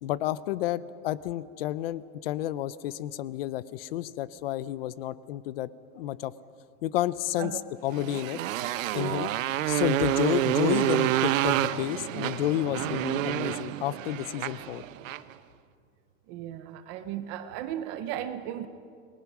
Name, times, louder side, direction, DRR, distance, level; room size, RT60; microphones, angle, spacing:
voice 1, 0.0-5.7 5.9-6.3 6.8-7.5 7.8-8.4 8.9-9.3 9.7-14.8, left 13 dB, 45° left, 0.6 m, -30 dB
Motorcycle, 7.9-15.3, right 13 dB, 70° right, 0.9 m, -28 dB
voice 2, 16.3-18.7, right 11 dB, 20° right, 0.5 m, -36 dB
28.5 x 20.0 x 6.0 m
supercardioid pair, 170°, 41 cm